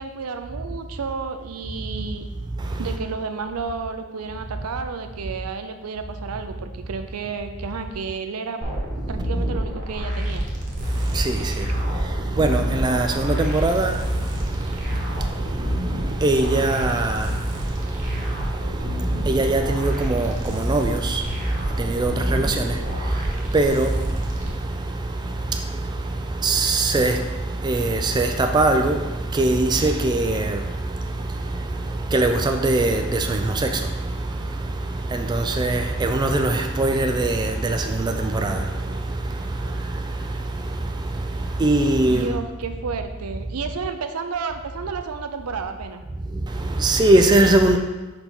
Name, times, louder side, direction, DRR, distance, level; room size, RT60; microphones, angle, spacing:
voice 1, 0.0-2.3 2.8-8.6 9.1-10.4 42.1-46.0, right 5 dB, 85° right, 0.5 m, -31 dB
voice 2, 2.5-2.9 9.0-9.2 10.8-42.4 46.2-47.8, right 2 dB, 20° right, 0.3 m, -23 dB
sound 1, 8.6-24.5, equal, 35° right, 1.1 m, -28 dB
5.2 x 4.5 x 4.3 m
head